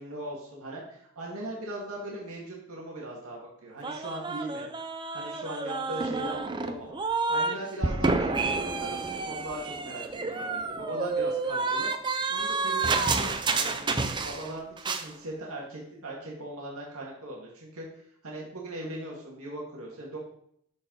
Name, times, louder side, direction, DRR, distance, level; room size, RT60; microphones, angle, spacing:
voice 1, 0.0-4.7 5.1-6.9 7.3-11.9 12.3-13.9 14.2-17.8 18.2-20.2, right 1 dB, 85° right, -3 dB, 2.0 m, -39 dB
sound 1, 3.8-7.6 7.8-14.5 14.8-15.1, right 3 dB, 20° right, 0.5 m, -29 dB
12.5 x 4.4 x 4.0 m, 0.69 s
head